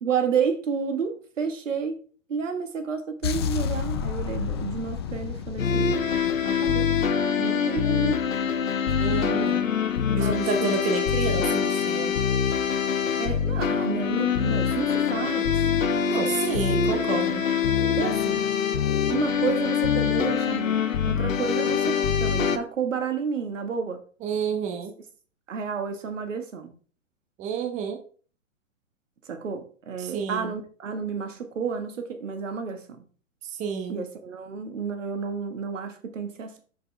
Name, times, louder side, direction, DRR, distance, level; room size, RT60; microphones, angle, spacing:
voice 1, 0.0-2.0 2.3-6.0 6.4-6.9 7.4-8.2 10.2-10.7 13.2-15.5 18.0-18.5 19.1-24.0 25.5-26.7 29.3-33.0 33.9-36.6, right 6 dB, 70° right, 1.6 m, -31 dB
sound 1, 3.2-7.3, left 7 dB, 20° left, 0.3 m, -31 dB
sound 2, 5.6-22.6, left 7 dB, 80° left, 0.9 m, -24 dB
voice 2, 9.0-9.7 10.1-12.2 16.1-17.5 24.2-24.9 27.4-28.0 30.0-30.6 33.4-34.0, right 6 dB, 20° right, 0.9 m, -30 dB
7.2 x 6.4 x 3.3 m
figure-of-eight pair, 120°, 39 cm